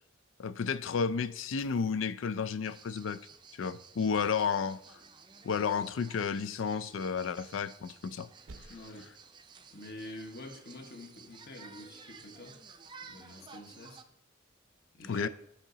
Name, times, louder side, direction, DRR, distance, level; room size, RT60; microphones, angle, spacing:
voice 1, 0.4-3.2 3.5-4.8 5.4-8.3 15.1-15.3, left 6 dB, 85° left, 0.4 m, -32 dB
sound 1, 1.6-2.9 4.1-5.3 7.1-8.2 8.5-9.1 11.5-11.9, right 2 dB, 90° right, 0.7 m, -57 dB
sound 2, 2.6-14.0, right 5 dB, 25° right, 0.5 m, -54 dB
voice 2, 8.7-9.1 9.7-12.6 13.1-14.0 14.9-15.3, left 1 dB, 55° left, 1.3 m, -47 dB
8.8 x 5.8 x 3.9 m
head